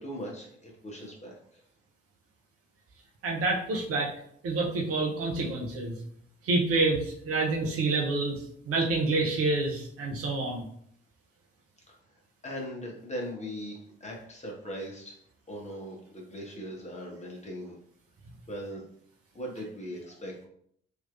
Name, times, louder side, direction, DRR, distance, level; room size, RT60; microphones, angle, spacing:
voice 1, 0.0-1.6 12.4-15.1 15.5-17.7 18.5-18.8 19.3-20.3, equal, 20° left, -1 dB, 1.2 m, -39 dB
voice 2, 3.2-4.1 4.4-6.0 6.4-10.7, right 3 dB, 50° right, -1 dB, 0.8 m, -28 dB
3.3 x 3.1 x 2.5 m, 0.66 s
figure-of-eight pair, 40°, 31 cm